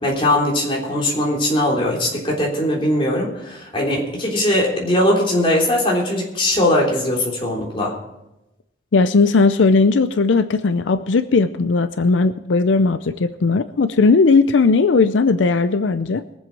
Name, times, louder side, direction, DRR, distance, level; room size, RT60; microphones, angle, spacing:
voice 1, 0.0-7.9, left 1 dB, 30° left, -2 dB, 3.5 m, -20 dB
voice 2, 8.9-16.2, left 4 dB, 80° left, 12 dB, 0.5 m, -17 dB
22.0 x 7.7 x 4.7 m, 0.93 s
head